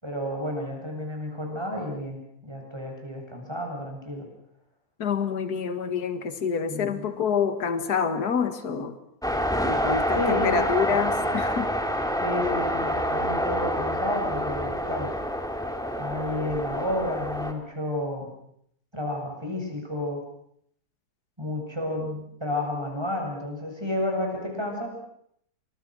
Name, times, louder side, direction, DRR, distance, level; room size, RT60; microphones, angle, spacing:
voice 1, 0.0-4.3 6.7-7.1 10.1-11.4 12.2-15.1 16.0-18.3 18.9-20.2 21.4-24.9, left 1 dB, 15° right, 1 dB, 7.7 m, -31 dB
voice 2, 5.0-9.0 9.6-11.7, left 6 dB, 60° left, 9 dB, 2.3 m, -27 dB
sound 1, 9.2-17.5, equal, ahead, 2.5 m, -27 dB
29.0 x 25.5 x 6.4 m, 0.71 s
omnidirectional pair, 1.9 m